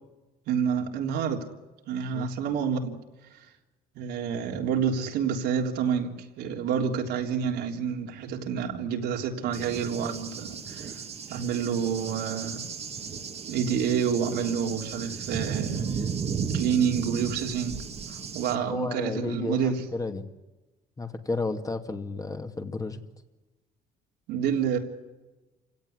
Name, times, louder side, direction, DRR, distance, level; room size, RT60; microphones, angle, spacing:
voice 1, 0.5-1.4 1.9-3.0 4.0-11.0 11.3-12.7 13.5-16.1 16.5-17.8 18.1-19.8 24.3-24.8, right 7 dB, 85° right, 2 dB, 3.6 m, -28 dB
Cricket / Thunder, 9.5-18.5, right 6 dB, 40° right, 1.9 m, -35 dB
voice 2, 18.5-20.3 21.0-23.0, left 3 dB, 20° left, 5 dB, 2.4 m, -32 dB
28.5 x 17.5 x 9.9 m, 1.1 s
cardioid pair, 110°, 17 cm